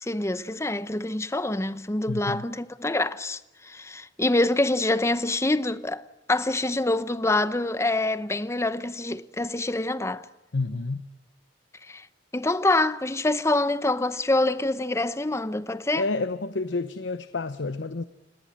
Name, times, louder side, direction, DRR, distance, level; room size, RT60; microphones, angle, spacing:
voice 1, 0.0-6.0 6.3-10.3 11.9-12.1 12.3-16.1, left 2 dB, 15° left, 0.8 m, -26 dB
voice 2, 2.1-2.4 10.5-11.1 15.9-18.0, left 3 dB, 80° left, 0.9 m, -29 dB
29.5 x 18.5 x 7.6 m
head